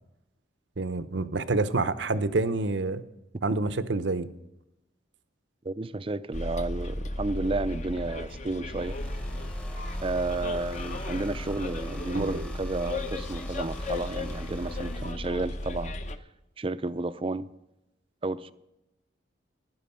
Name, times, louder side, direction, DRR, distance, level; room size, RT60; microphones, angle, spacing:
voice 1, 0.8-3.0 3.4-4.3 12.1-12.5, right 3 dB, 70° right, 0.8 m, -28 dB
voice 2, 5.6-9.0 10.0-15.9 16.6-17.5 18.2-18.5, right 2 dB, 30° right, 0.5 m, -32 dB
Bus, 6.3-16.2, left 1 dB, 40° left, 0.8 m, -35 dB
sound 1, 8.7-15.1, equal, 5° left, 0.9 m, -42 dB
15.5 x 11.0 x 5.6 m
head